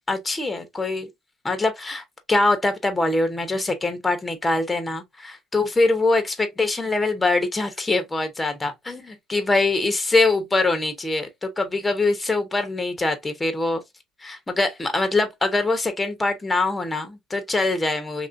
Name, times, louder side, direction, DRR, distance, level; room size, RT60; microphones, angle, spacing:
voice 1, 0.1-1.1 1.4-13.8 14.2-18.3, left 2 dB, 15° left, 0.8 m, -23 dB
2.9 x 2.5 x 2.5 m
supercardioid pair, 85°, 0 cm